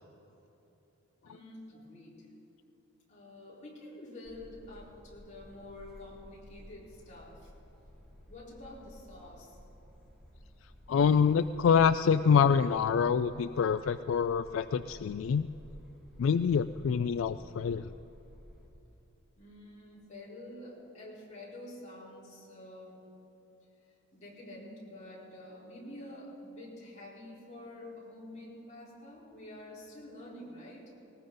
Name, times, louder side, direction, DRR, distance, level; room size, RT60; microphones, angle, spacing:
voice 1, 1.2-2.2 3.1-7.5 8.3-9.6 19.4-23.3 24.1-30.9, left 1 dB, 35° left, -6 dB, 4.3 m, -48 dB
sound 1, 4.2-18.7, equal, ahead, 3.1 m, -54 dB
voice 2, 10.9-15.5 16.2-17.9, left 6 dB, 70° left, 12 dB, 0.3 m, -26 dB
19.5 x 19.0 x 3.9 m, 3.0 s
head